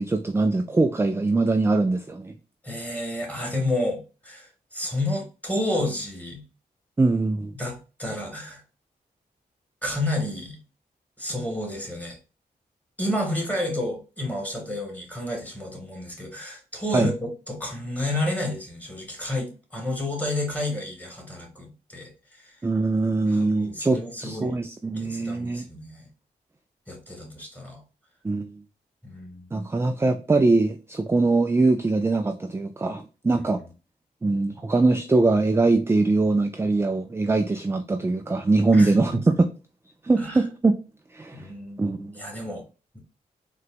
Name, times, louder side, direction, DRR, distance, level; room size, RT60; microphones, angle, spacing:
voice 1, 0.0-2.3 7.0-7.5 16.9-17.1 22.6-25.7 28.2-28.6 29.5-33.6 34.2-39.5 40.0-40.8 41.1-41.5 41.8-42.2, right 3 dB, 15° right, 0.3 m, -22 dB
voice 2, 2.6-6.4 7.5-8.6 9.8-10.6 11.2-12.2 13.0-22.6 23.3-24.6 24.9-26.1 26.9-27.8 29.0-29.5 33.3-33.4 38.7-39.2 40.2-40.4 41.3-42.6 42.9-43.0, left 1 dB, 10° left, 1.7 m, -31 dB
3.9 x 2.2 x 2.4 m
supercardioid pair, 45°, 18 cm